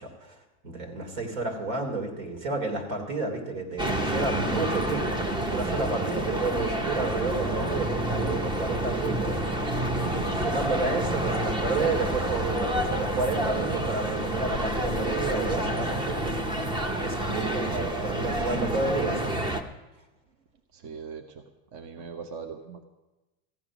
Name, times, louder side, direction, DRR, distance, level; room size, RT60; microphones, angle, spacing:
voice 1, 0.0-5.2 5.5-9.4 10.0-16.4 16.8-19.5, right 3 dB, 80° right, 2 dB, 3.2 m, -31 dB
sound 1, 3.8-19.6, right 1 dB, 10° right, 0.5 m, -28 dB
voice 2, 20.7-21.4 21.7-22.8, right 6 dB, 45° right, 6 dB, 0.9 m, -40 dB
15.0 x 9.5 x 6.0 m, 1.1 s
supercardioid pair, 140°, 42 cm